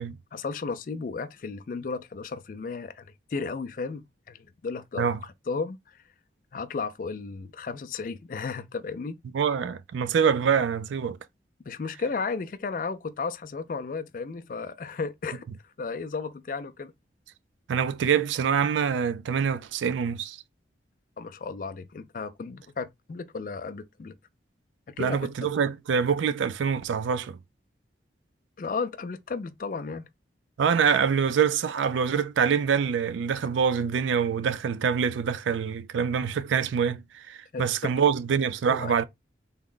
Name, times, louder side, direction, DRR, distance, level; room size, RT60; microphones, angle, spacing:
voice 1, 0.3-5.8 6.5-9.2 11.6-15.4 15.8-16.9 21.2-24.1 24.9-25.3 28.6-30.1 37.5-37.7 38.7-38.9, left 4 dB, 45° left, 0.3 m, -34 dB
voice 2, 9.3-11.2 17.7-20.4 25.0-27.4 30.6-39.0, right 7 dB, 85° right, 0.3 m, -25 dB
3.5 x 2.1 x 3.7 m
head